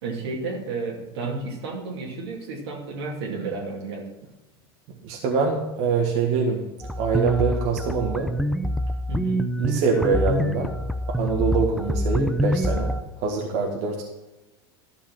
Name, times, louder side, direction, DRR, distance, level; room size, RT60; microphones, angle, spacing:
voice 1, 0.0-4.1 9.1-9.4, right 4 dB, 85° right, -1 dB, 2.7 m, -32 dB
voice 2, 5.0-6.6 7.0-8.3 9.6-10.7 11.2-12.9 13.2-14.0, right 5 dB, 65° right, -1 dB, 1.9 m, -24 dB
sound 1, 6.8-13.0, equal, ahead, 0.7 m, -26 dB
12.5 x 5.6 x 6.0 m, 1.1 s
hypercardioid pair, 100°, 13 cm